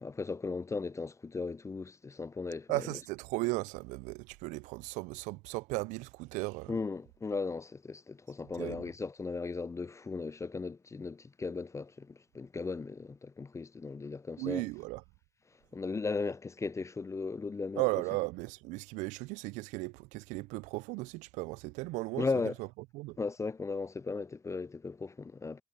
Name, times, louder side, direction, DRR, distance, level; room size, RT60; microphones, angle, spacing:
voice 1, 0.0-2.8 6.7-14.6 15.7-17.8 22.2-22.5 23.2-25.6, left 4 dB, 25° left, 0.5 m, -37 dB
voice 2, 2.7-6.8 8.6-8.9 14.4-15.0 17.8-22.7 22.9-23.2, right 23 dB, 75° right, 0.8 m, -36 dB
hypercardioid pair, 50°, 13 cm